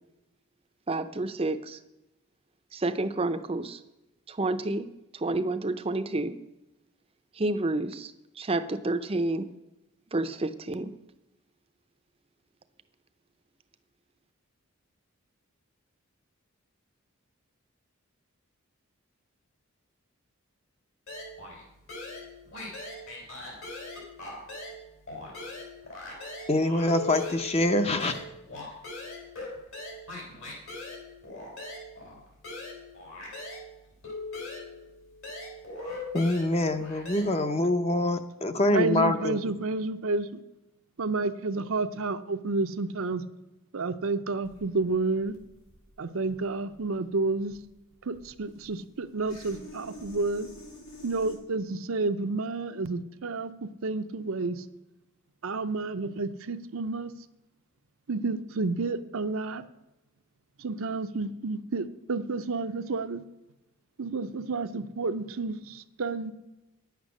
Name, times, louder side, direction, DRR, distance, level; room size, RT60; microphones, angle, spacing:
voice 1, 0.9-1.8 2.7-3.8 4.3-6.4 7.3-9.5 10.1-10.9, right 2 dB, 25° right, 10 dB, 0.5 m, -30 dB
sound 1, 21.1-21.6 21.9-24.8 25.1-33.7 34.0-37.2, left 2 dB, 65° left, 4.0 m, -40 dB
voice 2, 26.5-28.2 36.1-39.4, left 1 dB, 30° left, 8 dB, 0.7 m, -25 dB
voice 3, 38.7-40.3 41.0-43.2 43.7-45.3 46.0-47.6 48.0-50.5 51.0-54.6 55.4-57.1 58.1-59.6 60.6-63.2 64.0-66.3, right 3 dB, 70° right, 9 dB, 0.6 m, -30 dB
sound 2, 44.4-51.4, equal, 85° left, 3.9 m, -49 dB
10.5 x 8.2 x 6.2 m, 0.95 s
head